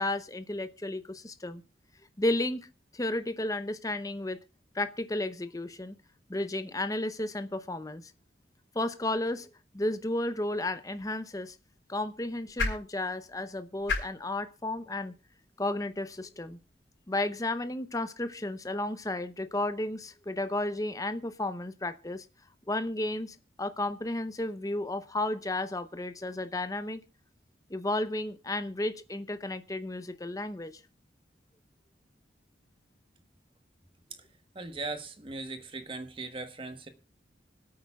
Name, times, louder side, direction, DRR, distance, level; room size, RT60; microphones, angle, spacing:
voice 1, 0.0-1.6 2.2-2.7 2.9-4.4 4.7-6.0 6.3-8.0 8.7-11.6 11.9-15.1 15.6-16.6 17.1-22.3 22.7-27.0 27.7-30.8, left 1 dB, 20° left, 0.7 m, -33 dB
sound 1, 10.8-17.0, left 3 dB, 85° left, 3.9 m, -39 dB
voice 2, 34.5-36.9, right 3 dB, 30° right, 1.3 m, -39 dB
25.5 x 8.7 x 2.4 m
head